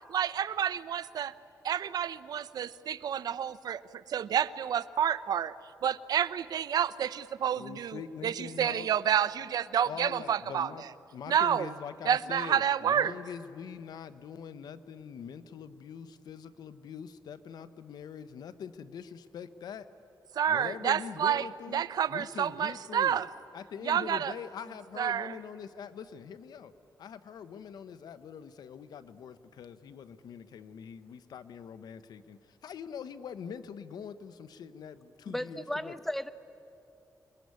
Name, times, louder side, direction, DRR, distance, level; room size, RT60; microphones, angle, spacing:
voice 1, 0.1-1.3 1.6-3.8 4.1-5.5 5.8-10.7 11.3-11.7 12.0-13.1 20.4-21.4 21.7-23.3 23.8-24.3 25.0-25.4, right 9 dB, 75° right, 16 dB, 0.7 m, -29 dB
voice 2, 7.6-8.9 9.8-10.8 11.1-19.9 20.5-23.2 23.5-26.7 27.0-35.9, left 7 dB, 80° left, 12 dB, 1.1 m, -43 dB
voice 3, 35.3-36.3, left 1 dB, 5° left, 12 dB, 1.0 m, -35 dB
28.5 x 21.0 x 9.6 m, 2.8 s
cardioid pair, 80°, 7 cm